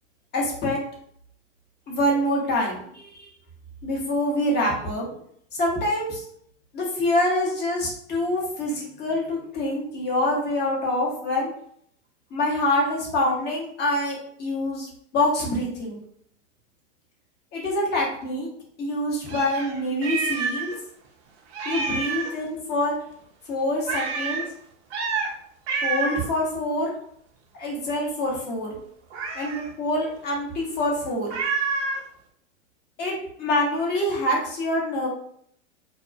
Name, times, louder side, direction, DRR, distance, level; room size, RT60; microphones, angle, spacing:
voice 1, 0.3-0.8 1.9-3.3 3.8-5.1 5.5-6.2 6.7-11.5 12.3-16.0 17.5-18.5 18.8-20.7 21.6-22.9 23.5-24.4 25.8-26.9 27.6-28.8 29.3-31.4 33.0-35.1, left 1 dB, 25° left, -3 dB, 1.0 m, -25 dB
Meow, 19.3-20.8 21.0-21.1 21.5-22.4 23.9-24.5 24.9-25.3 25.7-26.3 29.1-29.7 31.3-32.0, right 4 dB, 60° right, 0.8 m, -28 dB
2.8 x 2.3 x 2.5 m, 0.67 s
hypercardioid pair, 120°, 37 cm